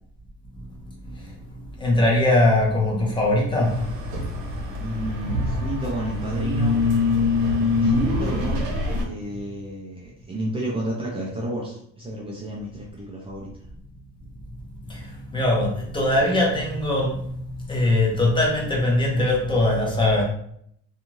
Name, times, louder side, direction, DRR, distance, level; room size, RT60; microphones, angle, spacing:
voice 1, 1.0-3.9 14.9-20.2, left 1 dB, 15° left, -3 dB, 0.7 m, -22 dB
sound 1, 3.6-9.0, left 3 dB, 85° right, 0.9 m, -24 dB
voice 2, 4.8-6.9 7.7-13.5, right 1 dB, 20° right, -4 dB, 0.4 m, -31 dB
2.6 x 2.3 x 3.0 m, 0.66 s
cardioid pair, 155°, 29 cm